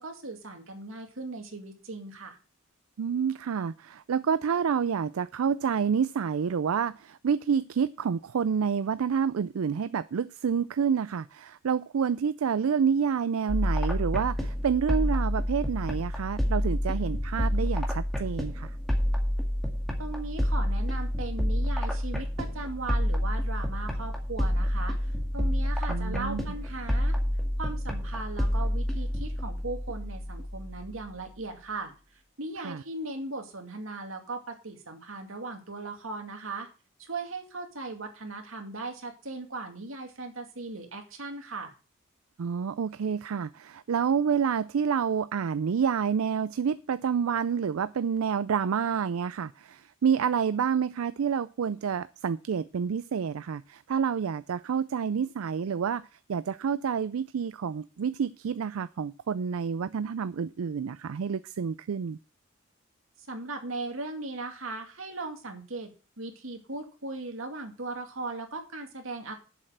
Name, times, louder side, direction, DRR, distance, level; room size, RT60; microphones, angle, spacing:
voice 1, 0.0-2.4 20.0-27.1 27.6-36.7 37.0-41.7 63.2-65.9 66.2-69.3, right 3 dB, 70° right, 2.3 m, -38 dB
voice 2, 3.0-18.7 25.9-26.4 32.6-32.8 42.4-62.2, right 7 dB, 85° right, 0.4 m, -28 dB
sound 1, 13.5-31.1, equal, ahead, 1.9 m, -29 dB
7.4 x 6.6 x 7.9 m
head